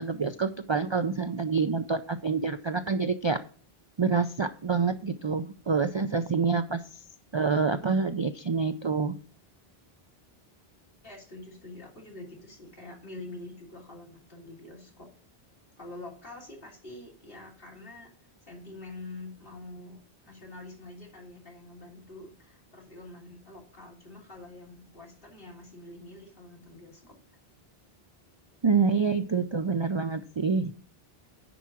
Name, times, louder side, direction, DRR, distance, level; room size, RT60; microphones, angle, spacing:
voice 1, 0.0-3.4 4.0-6.8 7.3-9.2 28.6-30.7, right 5 dB, 45° right, 10 dB, 0.4 m, -27 dB
voice 2, 11.0-15.1 15.8-18.1 18.4-27.2, left 2 dB, 65° left, -2 dB, 3.3 m, -46 dB
10.0 x 4.7 x 6.0 m, 0.42 s
omnidirectional pair, 1.0 m